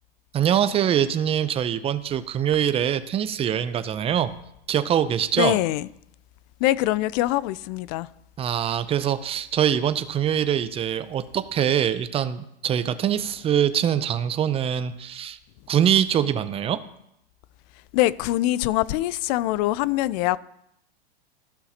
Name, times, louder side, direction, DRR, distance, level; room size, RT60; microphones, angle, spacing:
voice 1, 0.3-4.3 4.7-5.6 8.4-15.4 15.7-16.8, right 9 dB, 20° right, 0.5 m, -23 dB
voice 2, 5.4-5.9 6.6-8.1 17.9-20.4, left 16 dB, 45° left, 0.4 m, -23 dB
15.0 x 5.7 x 2.9 m
hypercardioid pair, 120°, 30 cm